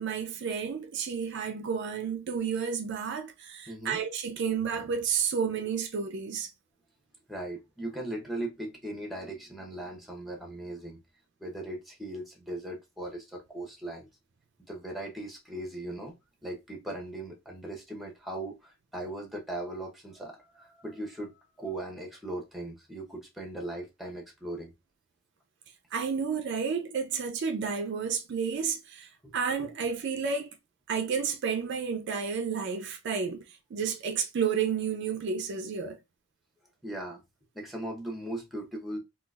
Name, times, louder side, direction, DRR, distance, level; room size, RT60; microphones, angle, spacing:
voice 1, 0.0-6.5 25.9-30.6 30.9-36.0, right 6 dB, 55° right, 0.4 m, -31 dB
voice 2, 3.7-4.0 7.3-11.0 11.4-14.1 14.7-16.1 16.4-24.7 29.2-29.3 29.6-29.7 36.8-37.2 37.5-39.0, right 1 dB, ahead, 0.8 m, -38 dB
3.8 x 2.3 x 2.3 m
head